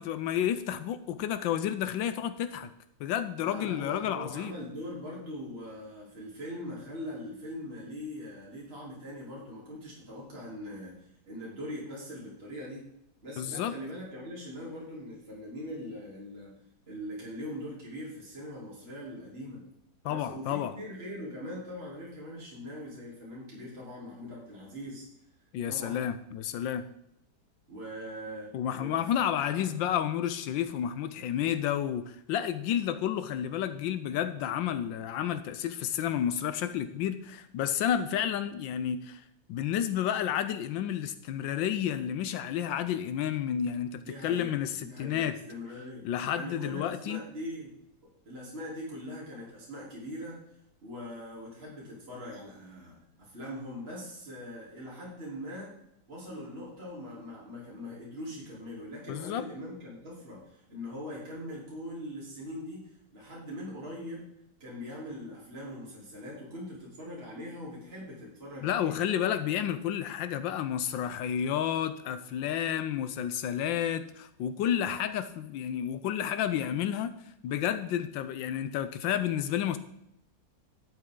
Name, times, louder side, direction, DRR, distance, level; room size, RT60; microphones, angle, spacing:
voice 1, 0.0-2.7 3.0-4.5 13.4-13.7 20.0-20.7 25.5-26.8 28.5-39.2 39.5-45.4 46.0-47.2 59.1-59.4 68.6-77.1 77.4-79.8, left 10 dB, 80° left, 12 dB, 1.4 m, -31 dB
voice 2, 3.4-12.8 13.2-16.5 16.9-19.6 20.1-25.1 25.7-26.1 27.7-28.5 28.8-29.7 44.0-46.0 46.3-47.7 48.3-50.4 50.8-55.7 56.1-62.8 63.1-64.2 64.6-68.9, equal, 30° right, -6 dB, 3.5 m, -41 dB
12.0 x 7.6 x 3.7 m, 0.78 s
omnidirectional pair, 2.0 m